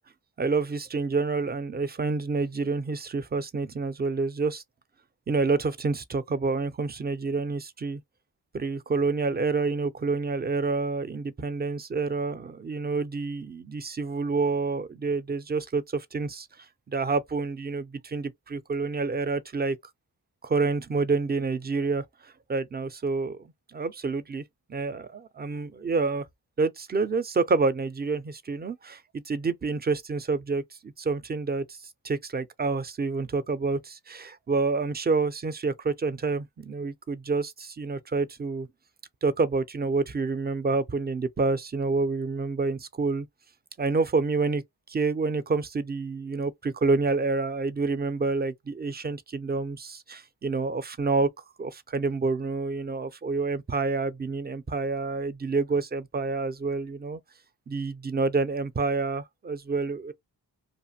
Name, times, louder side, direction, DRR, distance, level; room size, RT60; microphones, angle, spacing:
voice 1, 0.4-4.6 5.3-8.0 8.5-16.5 16.9-19.8 20.4-22.0 22.5-24.4 24.7-26.2 26.6-29.0 29.3-31.8 32.0-38.7 39.2-43.3 43.8-44.6 44.9-51.3 51.6-57.2 57.7-60.1, right 4 dB, 25° right, 0.4 m, -28 dB
2.5 x 2.4 x 2.7 m
cardioid pair, 60°, 42 cm